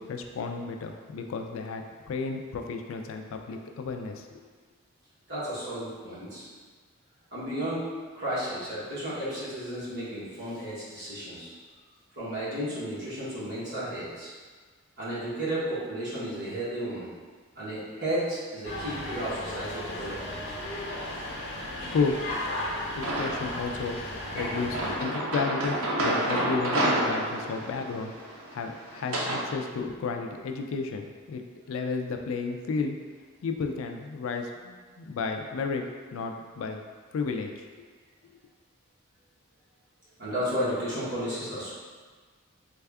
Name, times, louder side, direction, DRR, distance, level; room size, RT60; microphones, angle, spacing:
voice 1, 0.0-4.3 21.9-22.2 23.0-24.0 24.3-31.4 31.7-33.0 33.4-35.8 36.1-36.8 37.1-37.7, left 4 dB, 70° left, 4 dB, 0.3 m, -32 dB
voice 2, 5.3-6.4 7.3-7.8 8.1-11.5 12.2-14.3 15.0-17.1 17.5-20.3 24.7-25.3 40.2-41.7, right 1 dB, 50° right, -10 dB, 1.2 m, -33 dB
sound 1, 18.6-25.0, left 1 dB, 50° left, 1.0 m, -35 dB
sound 2, 23.0-23.6 24.4-29.4, right 1 dB, 80° right, 0.6 m, -29 dB
3.4 x 2.3 x 3.4 m, 1.5 s
head